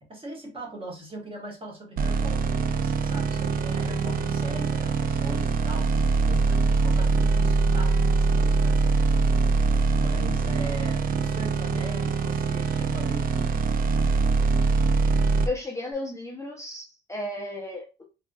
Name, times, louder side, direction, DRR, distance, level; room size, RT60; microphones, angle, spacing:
voice 1, 0.0-9.3 9.6-13.8, right 1 dB, 25° right, -1 dB, 1.5 m, -40 dB
sound 1, 2.0-15.5, right 4 dB, 45° right, 0.4 m, -23 dB
voice 2, 15.5-18.0, left 2 dB, 15° left, -1 dB, 0.7 m, -34 dB
3.5 x 2.4 x 2.4 m, 0.29 s
cardioid pair, 90°, 20 cm